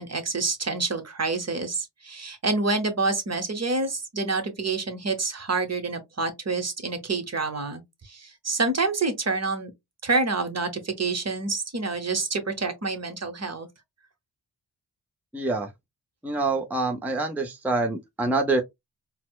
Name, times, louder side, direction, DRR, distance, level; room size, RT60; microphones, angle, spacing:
voice 1, 0.0-9.7 10.0-13.7, right 3 dB, 40° right, 1.0 m, -27 dB
voice 2, 15.3-15.7 16.2-18.6, right 3 dB, 5° right, 0.6 m, -26 dB
4.1 x 2.1 x 2.3 m
cardioid pair, 60°, 40 cm